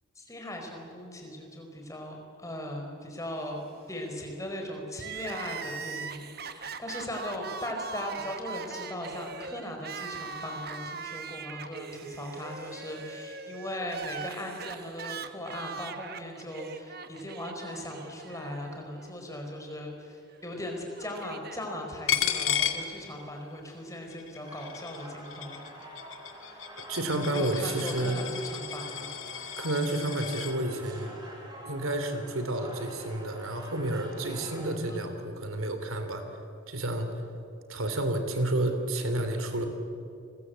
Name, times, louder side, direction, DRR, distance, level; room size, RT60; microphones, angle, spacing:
voice 1, 0.1-3.6 3.9-25.6 26.4-26.6 27.3-29.1 34.9-35.2, left 1 dB, 15° left, 2 dB, 4.7 m, -38 dB
Crying sobbing, 4.9-19.1 19.4-19.5 20.5-21.6, right 5 dB, 50° right, 1.2 m, -41 dB
Coin (dropping), 22.1-23.6 23.9-30.5, left 9 dB, 75° left, 2.1 m, -34 dB
sound 1, 24.4-34.7, right 1 dB, 20° right, 5.7 m, -47 dB
voice 2, 26.9-28.2 29.6-31.1 31.6-36.2 36.7-37.1 37.7-39.7, right 1 dB, 90° right, 7 dB, 3.2 m, -30 dB
30.0 x 22.0 x 8.3 m, 2.7 s
head